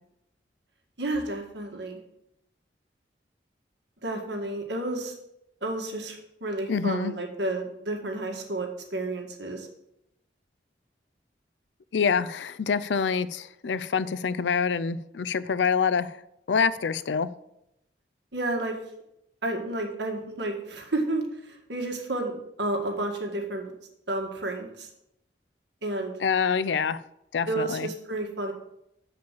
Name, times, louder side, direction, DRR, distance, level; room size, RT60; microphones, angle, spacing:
voice 1, 1.0-2.0 4.0-5.2 5.6-9.7 18.3-18.8 19.4-23.7 24.1-24.9 25.8-26.2 27.5-28.5, right 2 dB, 80° right, 2 dB, 1.8 m, -31 dB
voice 2, 6.7-7.1 11.9-16.2 16.5-17.3 26.2-27.0 27.3-27.9, left 6 dB, 90° left, 15 dB, 0.5 m, -26 dB
7.5 x 5.1 x 7.2 m, 0.82 s
head